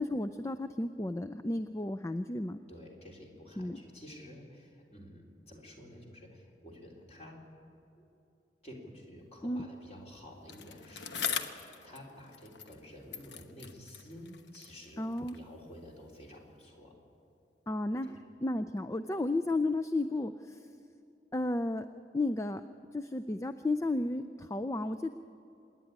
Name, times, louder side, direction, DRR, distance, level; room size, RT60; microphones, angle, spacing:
voice 1, 0.0-2.6 3.6-3.8 9.4-9.7 15.0-15.4 17.7-20.7 21.3-21.9 22.1-22.6 22.9-25.1, left 2 dB, 15° left, 9 dB, 0.4 m, -33 dB
voice 2, 2.7-7.4 8.0-8.1 8.6-15.0 15.3-16.9 18.1-18.2, equal, 35° left, 0 dB, 3.6 m, -51 dB
Bicycle, 10.5-12.9 13.1-15.5 16.3-16.4, left 7 dB, 75° left, 1.1 m, -41 dB
26.0 x 10.5 x 9.9 m, 2.8 s
head